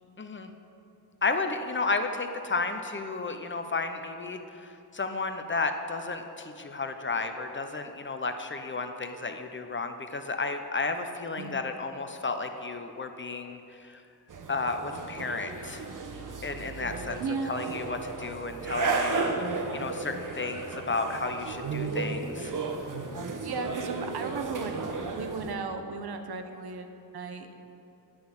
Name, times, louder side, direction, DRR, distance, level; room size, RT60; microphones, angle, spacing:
voice 1, 0.2-0.5 1.2-14.0 14.5-15.8 16.4-17.2 17.5-22.5, left 3 dB, 30° left, 7 dB, 0.8 m, -33 dB
sound 1, 14.3-25.6, right 3 dB, 55° right, 1.1 m, -34 dB
voice 2, 17.2-17.6 23.4-26.9 27.1-27.5, right 4 dB, 80° right, 6 dB, 1.0 m, -35 dB
9.4 x 6.2 x 8.6 m, 2.8 s
wide cardioid pair, 95°, 38 cm